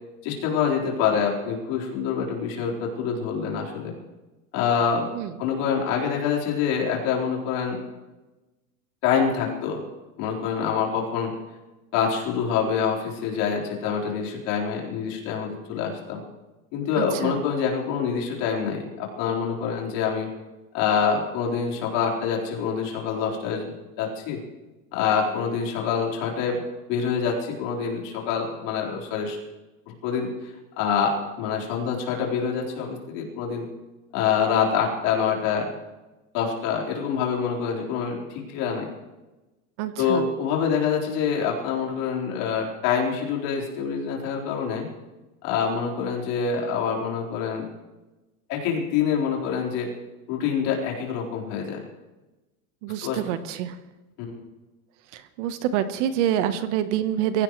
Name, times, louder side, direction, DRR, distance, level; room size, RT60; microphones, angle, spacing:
voice 1, 0.2-3.9 4.5-5.1 5.4-7.8 9.0-9.8 10.2-11.4 11.9-16.2 16.7-20.3 20.7-24.4 24.9-26.6 26.9-29.4 29.9-33.7 34.1-35.7 36.3-38.9 40.0-44.9 45.4-47.7 48.5-49.9 50.3-51.8 53.0-53.2 54.2-54.4, left 6 dB, 50° left, -2 dB, 4.4 m, -26 dB
voice 2, 17.0-17.3 39.8-40.3 52.8-53.8 55.1-57.4, right 10 dB, 55° right, 10 dB, 1.2 m, -26 dB
23.5 x 16.5 x 3.2 m, 1.1 s
supercardioid pair, 155°, 43 cm